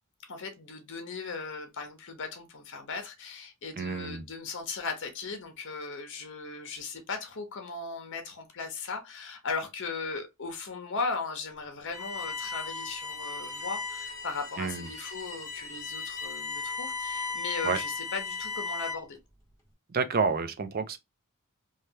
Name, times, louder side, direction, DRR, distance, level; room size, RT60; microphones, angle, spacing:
voice 1, 0.3-19.2, left 4 dB, 60° left, 0.8 m, -37 dB
voice 2, 3.8-4.2 14.6-14.9 17.6-17.8 19.9-21.0, right 5 dB, 45° right, 0.5 m, -29 dB
Bowed string instrument, 11.9-19.2, left 4 dB, 15° left, 1.0 m, -36 dB
3.2 x 2.3 x 2.7 m
head